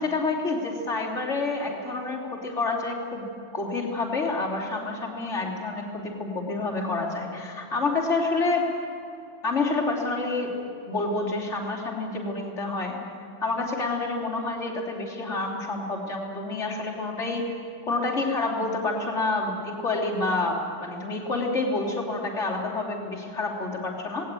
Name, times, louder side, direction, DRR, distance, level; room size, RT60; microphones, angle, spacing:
voice 1, 0.0-3.3 3.5-8.7 9.4-10.6 10.9-13.0 13.4-17.5 17.9-24.3, left 3 dB, 90° left, -2 dB, 3.6 m, -28 dB
19.0 x 18.0 x 9.1 m, 2.7 s
omnidirectional pair, 1.2 m